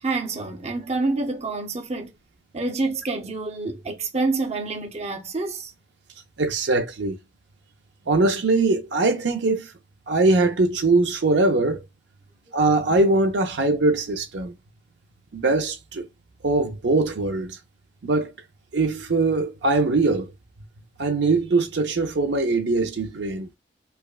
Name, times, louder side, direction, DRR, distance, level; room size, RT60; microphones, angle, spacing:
voice 1, 0.0-2.1 2.5-5.7, right 3 dB, 35° right, 0.7 m, -27 dB
voice 2, 6.4-7.2 8.1-9.7 10.1-11.8 12.5-14.5 15.3-16.1 16.4-17.6 18.0-18.3 18.7-20.3 21.0-23.5, right 3 dB, 75° right, 0.6 m, -21 dB
4.9 x 2.2 x 2.3 m
head